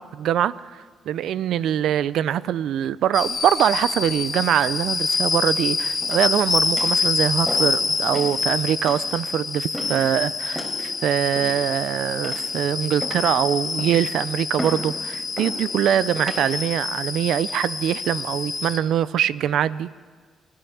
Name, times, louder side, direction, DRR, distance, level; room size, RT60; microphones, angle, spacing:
voice 1, 0.0-20.0, right 10 dB, 75° right, 18 dB, 0.5 m, -23 dB
sound 1, 3.1-18.8, left 4 dB, 35° left, 1.8 m, -26 dB
sound 2, 6.0-6.4 6.8-7.0 7.5-7.8 8.1-8.4 8.9-9.1 9.7-10.1 10.5-10.8 11.4-11.8 12.2-12.6 13.0-13.4 13.8-14.1 14.6-14.9 15.4-15.6 16.2-16.4 17.1-17.4, equal, 15° right, 4.3 m, -34 dB
30.0 x 12.5 x 7.1 m, 1.6 s
cardioid pair, 90°, 0 cm